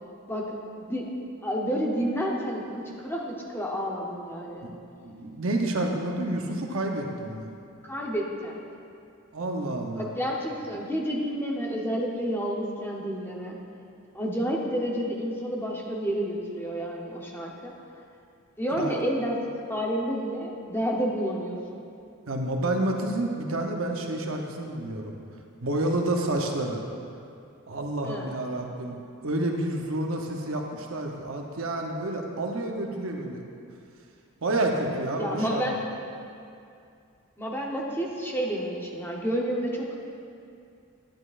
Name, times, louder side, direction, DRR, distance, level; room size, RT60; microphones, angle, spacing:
voice 1, 0.3-1.1 1.4-4.7 7.8-8.6 10.0-13.6 14.1-17.7 18.6-19.4 19.7-21.8 28.0-28.4 35.2-35.8 37.4-39.9, equal, 10° left, -2 dB, 0.8 m, -30 dB
voice 2, 5.0-7.5 9.3-10.1 18.8-19.0 22.3-25.1 25.6-26.8 27.7-33.4 34.4-35.7, right 1 dB, 75° right, 2 dB, 0.8 m, -29 dB
10.5 x 9.9 x 2.5 m, 2.5 s
head